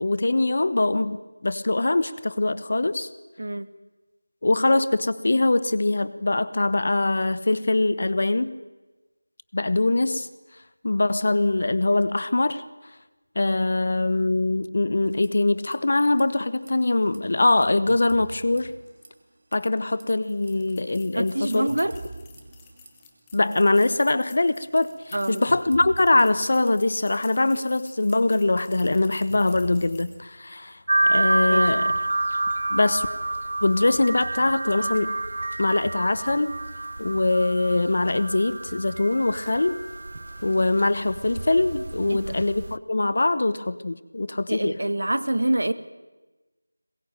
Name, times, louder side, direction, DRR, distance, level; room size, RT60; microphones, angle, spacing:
voice 1, 0.0-3.1 4.4-8.5 9.5-10.3 10.8-12.6 13.3-18.7 19.5-21.7 23.3-30.8 31.1-31.9 32.7-33.1 33.6-35.2 35.6-36.6 37.0-39.8 40.4-44.8, left 2 dB, 45° left, 16 dB, 1.2 m, -23 dB
voice 2, 3.4-3.7 21.1-22.0 25.1-25.5 31.5-31.7 42.1-42.4 43.3-43.4 44.5-45.7, right 1 dB, 65° right, 13 dB, 1.8 m, -26 dB
sound 1, 15.0-15.8 16.0-16.2 16.6-19.3 19.5-20.0 20.5-23.9 24.3-30.2, right 2 dB, 35° right, 2.7 m, -44 dB
sound 2, 20.2-30.3, left 7 dB, 10° left, 1.3 m, -52 dB
sound 3, 30.9-42.8, right 2 dB, 50° right, 0.8 m, -28 dB
22.0 x 21.0 x 9.1 m, 1.2 s
figure-of-eight pair, 175°, 0 cm